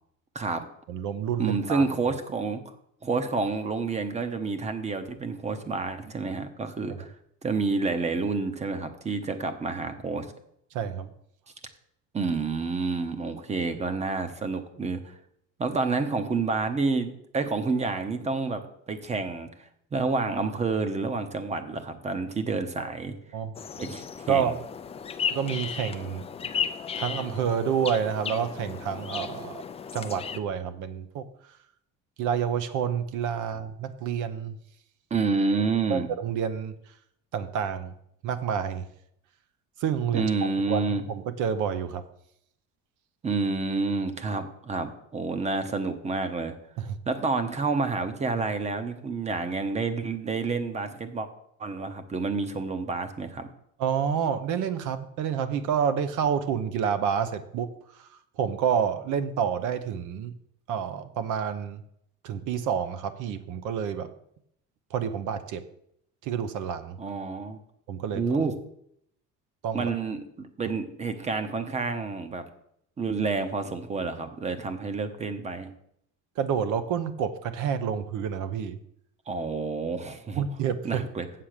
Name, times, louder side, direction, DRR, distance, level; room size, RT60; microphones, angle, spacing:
voice 1, 0.9-1.8 10.7-11.1 22.8-22.9 23.3-23.5 24.3-24.6 25.3-26.3 26.9-29.6 29.9-31.6 32.2-34.6 35.9-36.7 37.3-37.9 38.2-38.9 39.8-40.3 40.7-42.0 46.8-47.0 53.8-60.3 60.7-61.8 62.2-64.1 64.9-65.7 66.2-67.0 67.9-68.4 69.6-69.9 76.4-78.8 80.3-81.0, right 7 dB, 65° right, 11 dB, 0.9 m, -29 dB
voice 2, 1.4-2.6 3.0-7.2 7.4-10.3 12.1-15.2 15.6-23.1 23.8-24.5 35.1-36.1 40.1-41.0 43.2-46.5 47.1-51.3 51.6-53.5 67.0-67.6 68.2-68.5 69.7-72.4 73.0-75.7 79.3-80.4 80.8-81.3, right 4 dB, 20° right, 10 dB, 0.9 m, -29 dB
sound 1, 23.5-30.4, left 7 dB, 20° left, 0.4 m, -35 dB
7.7 x 7.3 x 6.6 m, 0.73 s
cardioid pair, 155°, 32 cm